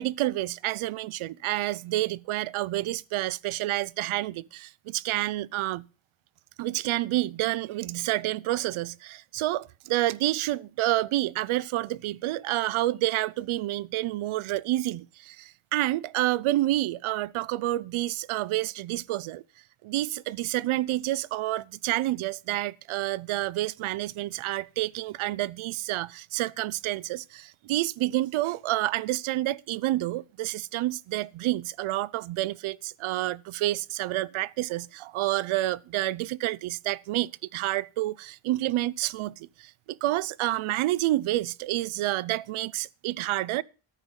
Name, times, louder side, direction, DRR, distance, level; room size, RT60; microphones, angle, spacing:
voice 1, 0.0-5.9 6.6-19.4 19.8-43.6, right 16 dB, 80° right, 0.6 m, -29 dB
14.0 x 5.3 x 8.0 m
cardioid pair, 150°, 49 cm